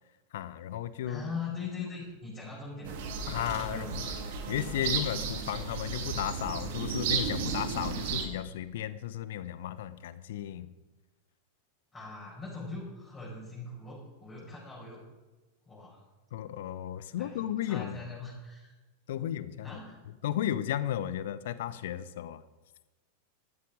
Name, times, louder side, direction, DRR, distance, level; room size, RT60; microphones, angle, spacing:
voice 1, 0.3-1.3 3.3-4.1 4.5-10.7 16.3-18.0 19.1-19.8 20.2-22.4, left 11 dB, 55° left, 16 dB, 0.8 m, -34 dB
voice 2, 1.1-3.0 3.4-4.0 11.9-15.0 15.7-16.0 17.1-18.7 19.6-20.0, left 4 dB, 15° left, -7 dB, 6.2 m, -41 dB
sound 1, 2.8-8.3, right 5 dB, 50° right, 2.3 m, -34 dB
14.5 x 12.5 x 5.2 m, 1.1 s
figure-of-eight pair, 90°, 0 cm